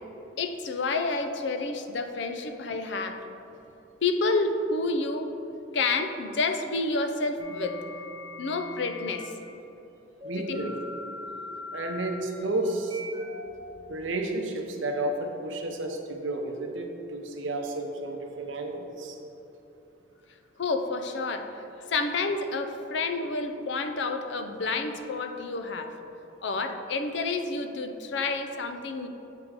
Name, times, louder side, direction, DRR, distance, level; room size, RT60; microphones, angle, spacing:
voice 1, 0.4-3.2 4.0-5.3 5.7-7.8 8.4-9.3 10.4-10.7 20.6-25.9 26.4-29.1, left 3 dB, 65° left, 7 dB, 0.4 m, -29 dB
sound 1, 7.4-9.3 10.2-14.2, left 2 dB, 30° right, 1.1 m, -41 dB
voice 2, 10.2-10.7 11.7-13.0 13.9-19.2, right 2 dB, 80° right, 3 dB, 0.7 m, -32 dB
7.5 x 3.6 x 4.8 m, 3.0 s
head